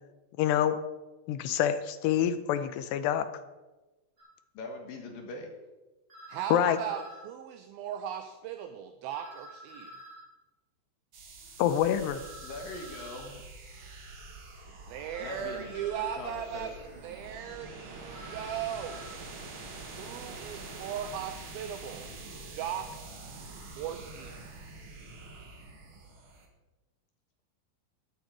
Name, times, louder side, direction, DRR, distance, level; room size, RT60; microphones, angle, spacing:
voice 1, 0.4-0.8 1.3-3.3 6.5-6.8 11.6-12.2, left 10 dB, 85° left, 10 dB, 2.8 m, -26 dB
sound 1, 4.2-4.3 6.1-7.2 9.1-10.2 12.1-13.2 15.1-16.2 18.1-19.1, right 1 dB, 30° right, 3.8 m, -48 dB
voice 2, 4.5-5.5 12.4-13.3 15.2-15.9 16.2-16.7, left 2 dB, 65° left, 3 dB, 2.7 m, -41 dB
voice 3, 6.3-9.9 14.8-19.0 19.9-22.1 22.4-22.9 23.8-24.5, right 9 dB, 80° right, 7 dB, 2.2 m, -38 dB
sound 2, 11.1-26.4, right 3 dB, 50° right, 1.5 m, -46 dB
13.0 x 11.0 x 4.8 m, 1.1 s
omnidirectional pair, 5.0 m